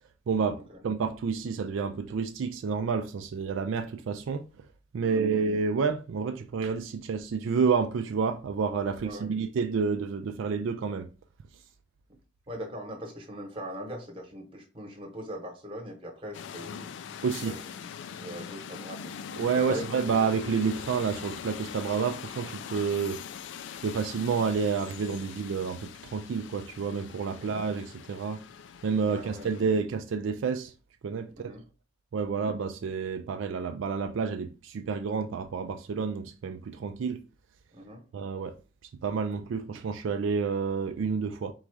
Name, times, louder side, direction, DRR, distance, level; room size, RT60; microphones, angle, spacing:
voice 1, 0.3-4.5 4.9-11.1 17.2-17.6 19.4-23.2 23.8-28.4 28.8-30.7 31.0-31.5 32.1-37.2 38.1-38.6 39.0-41.5, right 5 dB, 70° right, 0.3 m, -29 dB
voice 2, 5.0-5.4 9.0-9.3 12.5-16.9 17.4-19.9 27.3-27.5 29.1-29.5 31.4-31.6 32.3-32.4 37.7-38.0, equal, 25° right, 1.0 m, -41 dB
sound 1, 16.3-29.6, left 8 dB, 60° left, 0.3 m, -42 dB
3.9 x 2.4 x 4.6 m
head